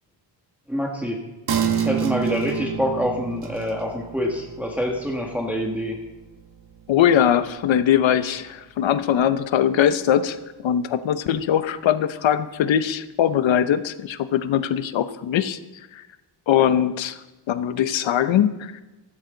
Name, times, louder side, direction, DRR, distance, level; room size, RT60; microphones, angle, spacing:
voice 1, 0.7-1.2 1.7-6.0, equal, 5° right, -1 dB, 1.7 m, -26 dB
sound 1, 1.5-8.5 8.9-9.0, right 8 dB, 60° right, 1.6 m, -30 dB
voice 2, 6.9-10.4 10.6-15.6 15.9-16.0 16.5-17.2 17.5-18.7, left 9 dB, 85° left, 12 dB, 0.9 m, -21 dB
15.0 x 13.5 x 3.9 m, 1.1 s
wide cardioid pair, 125°, 45 cm